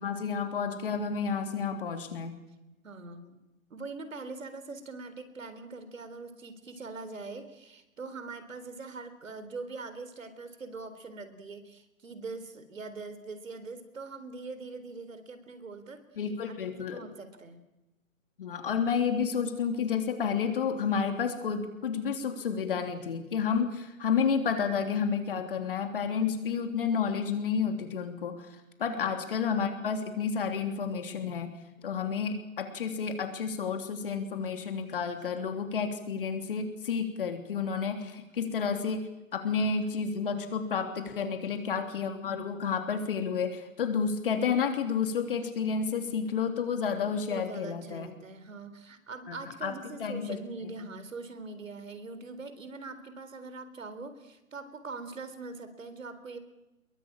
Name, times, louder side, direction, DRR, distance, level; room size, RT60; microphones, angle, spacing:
voice 1, 0.0-2.3 16.2-17.0 18.4-28.5 28.8-31.5 31.8-39.1 39.3-48.1 49.3-49.4 49.6-50.8, left 6 dB, 40° left, 6 dB, 3.3 m, -30 dB
voice 2, 2.8-3.4 3.7-16.0 16.5-17.6 28.9-29.2 41.2-41.4 47.3-56.4, right 3 dB, 65° right, 10 dB, 3.9 m, -42 dB
22.5 x 22.5 x 8.8 m, 0.95 s
hypercardioid pair, 160°, 41 cm